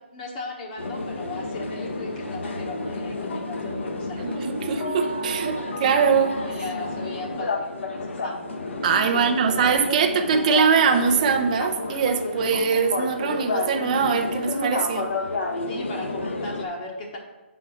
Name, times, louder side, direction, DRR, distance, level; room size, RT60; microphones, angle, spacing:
voice 1, 0.1-5.1 6.4-8.4 9.1-10.3 15.7-17.2, left 2 dB, 40° left, 0 dB, 1.1 m, -37 dB
sound 1, 0.8-16.6, left 2 dB, 75° left, 1.1 m, -30 dB
voice 2, 4.2-6.4 8.8-15.1, right 6 dB, 35° right, 6 dB, 0.6 m, -22 dB
5.9 x 4.5 x 5.7 m, 1.1 s
hypercardioid pair, 155°, 7 cm